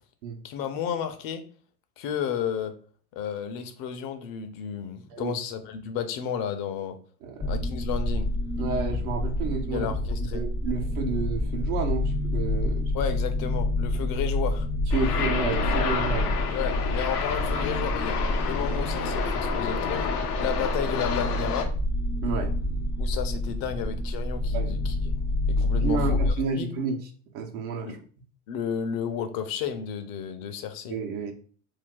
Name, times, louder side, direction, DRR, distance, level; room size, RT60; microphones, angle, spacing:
voice 1, 0.4-1.4 2.0-2.7 3.1-7.0 7.5-8.3 9.7-10.4 12.9-14.7 16.5-18.2 18.4-20.1 20.4-21.7 23.0-25.1 25.5-26.7 27.8-28.0 28.5-31.0, left 8 dB, 50° left, 8 dB, 0.7 m, -32 dB
voice 2, 7.2-7.6 8.6-9.9 10.3-12.9 14.9-16.3 22.2-22.5 24.5-24.7 25.7-27.0 27.3-28.0 30.9-31.3, right 5 dB, 70° right, 3 dB, 0.9 m, -30 dB
sound 1, 7.4-26.3, left 1 dB, 10° left, 0.3 m, -28 dB
sound 2, 14.9-21.7, left 6 dB, 85° left, 0.7 m, -30 dB
2.7 x 2.3 x 3.7 m, 0.42 s
hypercardioid pair, 90°, 45 cm